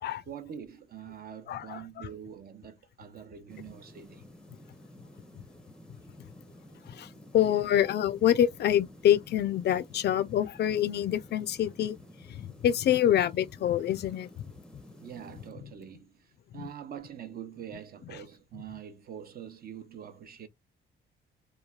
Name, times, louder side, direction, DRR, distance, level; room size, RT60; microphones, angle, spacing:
voice 1, 0.3-4.3 15.0-20.5, right 8 dB, 50° right, 0.6 m, -44 dB
voice 2, 1.5-2.1 6.9-7.1 7.3-12.0 12.3-14.3 16.6-16.7, left 11 dB, 55° left, 0.4 m, -26 dB
sound 1, 3.5-15.5, left 1 dB, 5° left, 0.6 m, -52 dB
3.1 x 2.3 x 2.3 m
cardioid pair, 90°, 20 cm